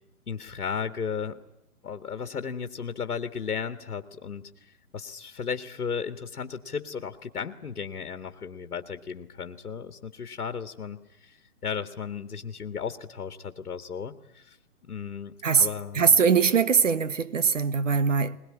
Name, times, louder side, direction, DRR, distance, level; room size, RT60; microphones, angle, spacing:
voice 1, 0.3-1.4 1.8-14.6 14.9-16.2, left 6 dB, 75° left, 1.9 m, -35 dB
voice 2, 15.9-18.4, right 6 dB, 55° right, 1.4 m, -21 dB
22.0 x 21.0 x 10.0 m
hypercardioid pair, 170°, 44 cm